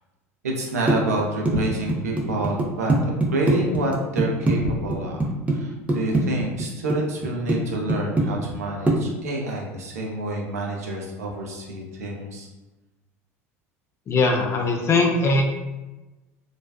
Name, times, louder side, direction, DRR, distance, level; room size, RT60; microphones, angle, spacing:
voice 1, 0.4-12.5, right 1 dB, 85° right, -1 dB, 0.5 m, -28 dB
sound 1, 0.9-4.5 4.9-5.6 5.9-7.0 7.2-7.6 7.9-8.6 8.9-9.0, right 2 dB, 15° right, 0.5 m, -22 dB
voice 2, 14.1-15.4, left 3 dB, 35° left, 2 dB, 0.5 m, -20 dB
2.4 x 2.2 x 2.3 m, 1.1 s
hypercardioid pair, 80°, 8 cm